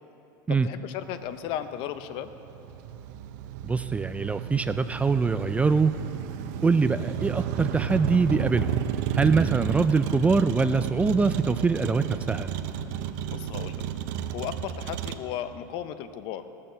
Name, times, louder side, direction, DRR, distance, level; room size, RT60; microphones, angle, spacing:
voice 1, 0.5-2.3 13.3-13.8 14.3-16.4, left 10 dB, 55° left, 11 dB, 0.7 m, -35 dB
Motor vehicle (road), 1.1-15.2, right 9 dB, 65° right, 0.7 m, -32 dB
voice 2, 3.6-6.0 6.6-8.8 9.2-12.5, right 4 dB, 15° right, 11 dB, 0.3 m, -23 dB
17.5 x 6.6 x 6.8 m, 2.9 s
supercardioid pair, 115°, 10 cm